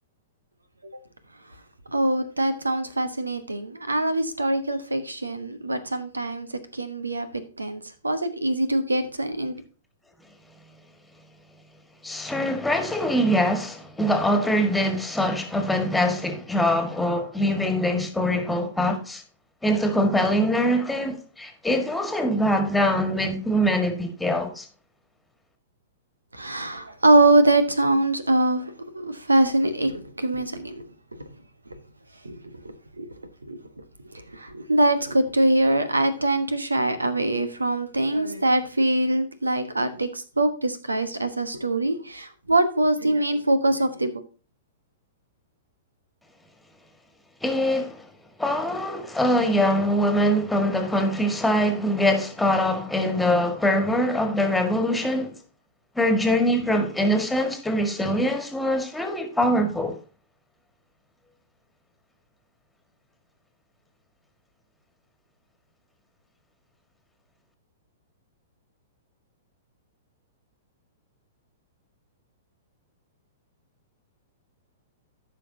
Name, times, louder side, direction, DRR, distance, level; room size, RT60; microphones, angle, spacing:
voice 1, 1.9-6.5 6.7-9.6 26.3-30.8 31.7-31.8 32.2-32.4 32.6-33.1 33.5-33.8 34.3-44.1, right 2 dB, 90° right, 1.2 m, -23 dB
voice 2, 12.0-19.2 19.6-24.7 47.4-48.1 48.4-55.3 56.0-59.9, equal, 5° left, 1.8 m, -23 dB
14.5 x 5.7 x 2.8 m
figure-of-eight pair, 110°, 0 cm